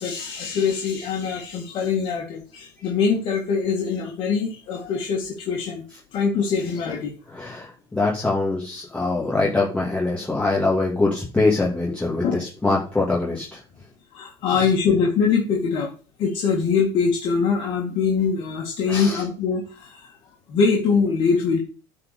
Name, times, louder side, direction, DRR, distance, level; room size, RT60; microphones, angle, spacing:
voice 1, 0.0-5.8 6.1-7.1 12.2-12.4 14.1-15.9 16.2-20.2 20.5-21.6, left 5 dB, 55° left, -1 dB, 2.1 m, -23 dB
voice 2, 7.3-13.9 14.5-14.7 18.9-19.2, left 3 dB, 10° left, -5 dB, 2.5 m, -24 dB
9.5 x 4.5 x 6.8 m, 0.36 s
cardioid pair, 130°, 11 cm